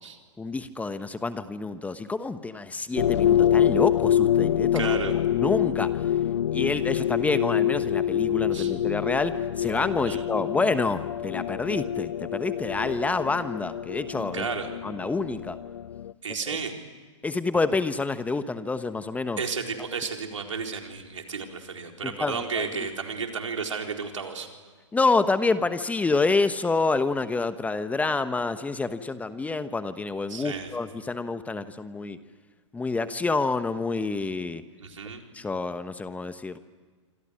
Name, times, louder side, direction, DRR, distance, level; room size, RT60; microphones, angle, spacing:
voice 1, 0.4-4.9 5.3-6.0 6.5-14.5 14.8-15.6 16.5-16.6 17.2-19.4 22.0-22.7 24.9-32.2 32.7-34.6 35.3-36.6, left 3 dB, 10° left, 11 dB, 1.1 m, -28 dB
sound 1, 3.0-16.1, left 10 dB, 70° left, 0.7 m, -26 dB
voice 2, 4.7-5.1 8.5-8.7 10.1-10.2 14.3-14.7 16.2-16.7 19.4-24.5 30.3-30.7 34.8-35.2, right 5 dB, 80° right, 3 dB, 4.3 m, -32 dB
27.0 x 26.0 x 6.4 m, 1.5 s
hypercardioid pair, 115°, 16 cm